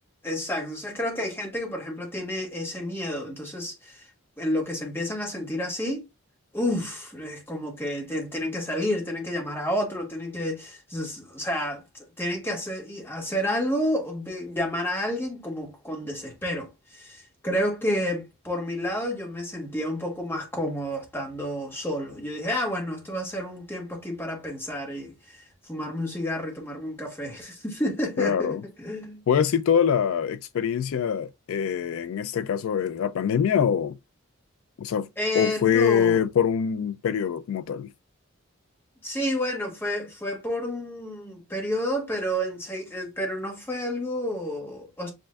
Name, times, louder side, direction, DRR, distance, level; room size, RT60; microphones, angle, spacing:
voice 1, 0.2-4.0 4.4-6.1 6.5-11.8 12.2-29.2 35.2-36.2 39.0-45.1, left 1 dB, 10° left, 1.2 m, -30 dB
voice 2, 28.2-28.6 29.3-34.0 34.8-35.1 35.4-37.9, left 7 dB, 70° left, 0.3 m, -24 dB
7.5 x 2.5 x 2.3 m
head